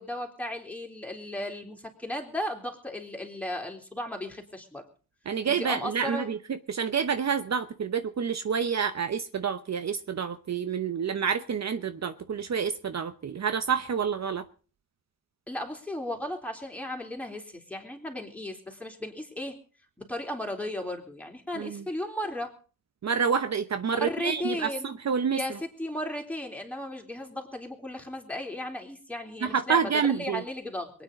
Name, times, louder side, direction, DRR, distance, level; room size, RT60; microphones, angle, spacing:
voice 1, 0.0-4.9 5.5-6.3 15.5-19.6 20.0-22.5 23.9-25.0 25.3-30.9, left 1 dB, 5° left, 1 dB, 3.5 m, -35 dB
voice 2, 5.3-14.4 21.5-21.8 23.0-25.6 29.4-30.4, right 6 dB, 50° right, 10 dB, 0.9 m, -28 dB
23.0 x 9.4 x 5.2 m, 0.38 s
wide cardioid pair, 110°, 34 cm